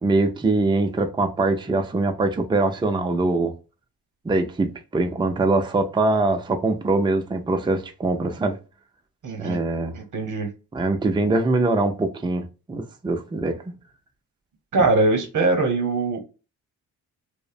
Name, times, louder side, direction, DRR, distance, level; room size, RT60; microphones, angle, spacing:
voice 1, 0.0-3.5 4.2-8.6 9.4-10.0 10.7-13.7, right 2 dB, 10° right, 0.4 m, -23 dB
voice 2, 9.2-9.6 9.9-10.5 14.7-16.2, right 3 dB, 50° right, 0.9 m, -22 dB
2.6 x 2.1 x 2.5 m
cardioid pair, 60°, 40 cm